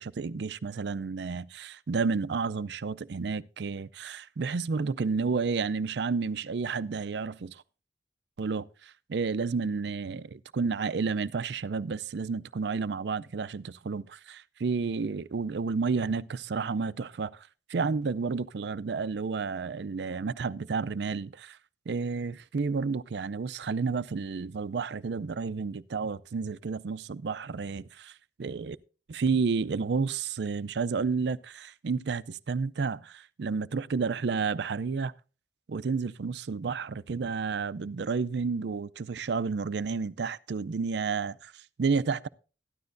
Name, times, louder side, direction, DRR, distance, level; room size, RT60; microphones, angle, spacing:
voice 1, 0.0-7.6 8.4-21.6 21.9-28.1 28.4-28.8 29.1-35.1 35.7-42.3, right 5 dB, 65° right, 0.4 m, -31 dB
13.5 x 11.5 x 2.6 m
head